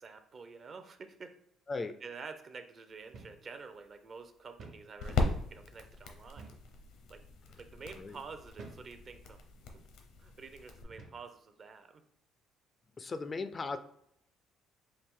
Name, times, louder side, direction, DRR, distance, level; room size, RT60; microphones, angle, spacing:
voice 1, 0.0-1.4 2.0-6.6 7.1-7.2 7.6-9.4 10.2-12.0, right 4 dB, 40° right, 8 dB, 0.6 m, -49 dB
sound 1, 2.9-10.8, left 3 dB, 80° left, 0.7 m, -39 dB
sound 2, 3.1-3.4 3.8-3.9 4.6-4.9 6.4-6.7 7.4-7.6 8.6-8.9 9.7-9.9 10.9-11.3, right 3 dB, 60° right, 0.9 m, -51 dB
voice 2, 13.0-13.8, left 3 dB, 30° left, 10 dB, 0.3 m, -37 dB
4.6 x 2.5 x 3.6 m, 0.72 s
cardioid pair, 95°, 0 cm